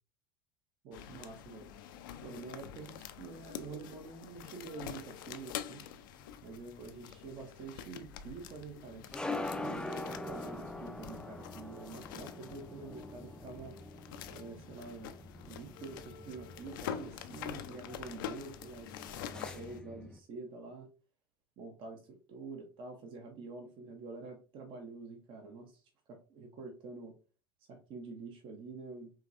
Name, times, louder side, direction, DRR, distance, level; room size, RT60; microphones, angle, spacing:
voice 1, 0.8-1.7 2.2-5.8 6.4-13.8 14.3-15.1 15.4-20.9 21.6-25.8 26.1-27.1 27.7-29.1, right 4 dB, 45° right, 4 dB, 0.9 m, -47 dB
sound 1, 0.9-19.8, left 9 dB, 65° left, 0.5 m, -46 dB
sound 2, 6.2-20.2, left 2 dB, 5° left, 0.5 m, -44 dB
5.0 x 3.1 x 2.5 m, 0.34 s
figure-of-eight pair, 75°, 12 cm